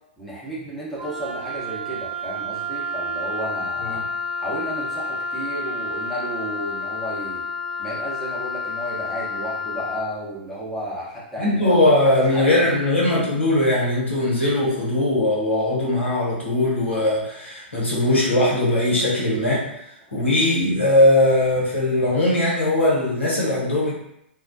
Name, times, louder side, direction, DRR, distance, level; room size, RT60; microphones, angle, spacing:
voice 1, 0.2-4.0 4.4-7.5 7.8-11.8 12.1-12.7, right 1 dB, ahead, -9 dB, 0.9 m, -32 dB
Wind instrument woodwind instrument, 1.0-10.1, left 2 dB, 50° right, 0.8 m, -30 dB
voice 2, 11.4-19.7 20.1-23.9, left 1 dB, 90° left, -6 dB, 0.9 m, -20 dB
2.3 x 2.2 x 2.5 m, 0.79 s
hypercardioid pair, 110°, 6 cm